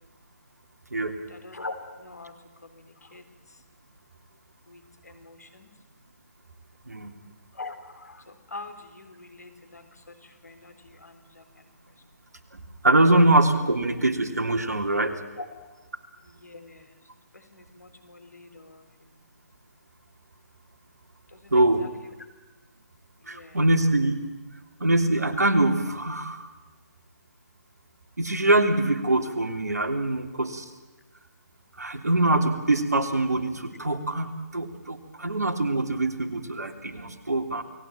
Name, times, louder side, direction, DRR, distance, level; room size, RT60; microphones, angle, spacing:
voice 1, 1.3-2.4 2.6-3.2 4.7-5.7 7.5-11.7 15.4-15.5 16.2-17.0 17.3-19.2 21.3-21.9 23.2-23.6, left 3 dB, 70° left, 8 dB, 3.9 m, -44 dB
voice 2, 6.9-7.2 12.5-15.2 21.5-21.9 23.3-24.1 24.8-26.5 28.2-30.7 31.8-37.6, right 2 dB, 70° right, 6 dB, 3.2 m, -23 dB
29.0 x 19.0 x 9.1 m, 1.2 s
figure-of-eight pair, 140°, 9 cm